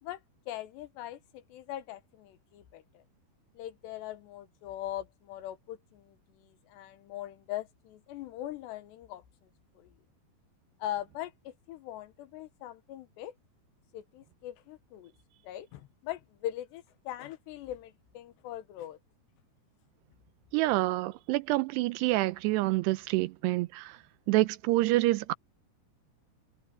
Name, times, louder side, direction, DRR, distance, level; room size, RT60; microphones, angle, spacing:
voice 1, 0.0-3.0 3.5-9.5 9.8-9.9 10.8-13.3 13.9-15.1 15.4-19.0, left 13 dB, 85° left, 3.4 m, -41 dB
voice 2, 20.5-24.0 24.3-25.3, right 19 dB, 85° right, 2.8 m, -27 dB
omnidirectional pair, 4.8 m